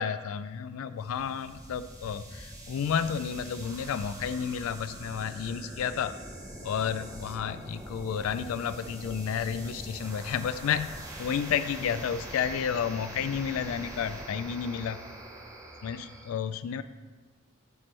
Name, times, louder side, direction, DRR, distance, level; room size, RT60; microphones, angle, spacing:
voice 1, 0.0-6.1 6.6-15.0 15.8-16.8, left 7 dB, 75° left, 13 dB, 0.3 m, -31 dB
sound 1, 1.0-16.3, right 1 dB, 15° right, 0.8 m, -43 dB
12.0 x 4.4 x 3.2 m, 1.3 s
head